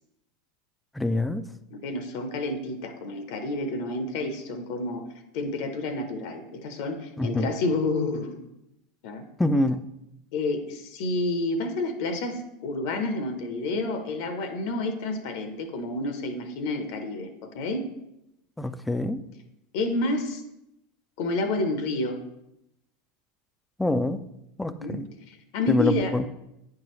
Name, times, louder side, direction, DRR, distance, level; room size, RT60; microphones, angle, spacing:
voice 1, 1.0-1.4 7.2-7.5 9.4-9.8 18.6-19.2 23.8-24.2 24.6-25.1 25.7-26.3, left 1 dB, 10° left, 12 dB, 0.4 m, -25 dB
voice 2, 1.7-5.0 5.3-8.4 9.0-9.2 10.3-17.8 19.7-20.4 21.2-22.2 24.8-26.1, left 2 dB, 60° left, 8 dB, 0.7 m, -29 dB
8.9 x 4.7 x 3.1 m, 0.84 s
hypercardioid pair, 85°, 0 cm